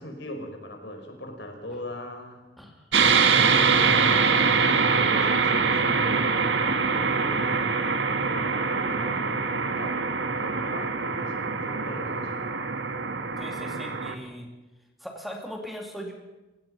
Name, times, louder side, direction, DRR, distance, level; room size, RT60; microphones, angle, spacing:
voice 1, 0.0-2.4 3.4-10.0 10.4-12.3, left 1 dB, 75° left, 4 dB, 5.3 m, -39 dB
sound 1, 2.9-14.2, right 5 dB, 85° right, 1.8 m, -24 dB
voice 2, 13.4-14.5 15.0-16.1, equal, ahead, 2 dB, 2.9 m, -39 dB
29.5 x 17.0 x 5.8 m, 1.1 s
head